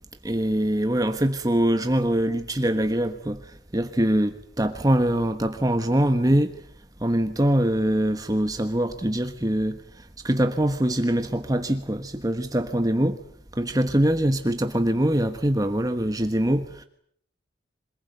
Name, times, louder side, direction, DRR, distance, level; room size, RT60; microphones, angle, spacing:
voice 1, 0.2-6.5 7.0-13.2 13.5-16.8, right 1 dB, 20° right, 1.3 m, -23 dB
27.0 x 20.0 x 9.3 m
head